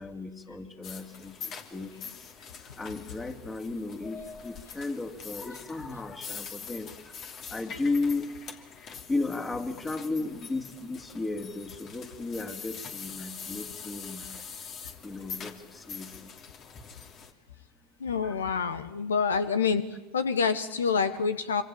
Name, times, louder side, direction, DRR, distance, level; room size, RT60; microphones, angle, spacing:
voice 1, 0.0-2.3 2.8-8.7 9.1-14.4 15.0-16.3 16.7-16.8 18.2-18.5, left 3 dB, 20° left, 7 dB, 3.1 m, -35 dB
sound 1, 0.8-17.3, left 6 dB, 45° left, 3.0 m, -44 dB
voice 2, 18.0-19.8 20.1-21.6, left 5 dB, 90° left, 13 dB, 1.3 m, -27 dB
25.5 x 25.5 x 8.8 m, 0.96 s
hypercardioid pair, 85°, 0 cm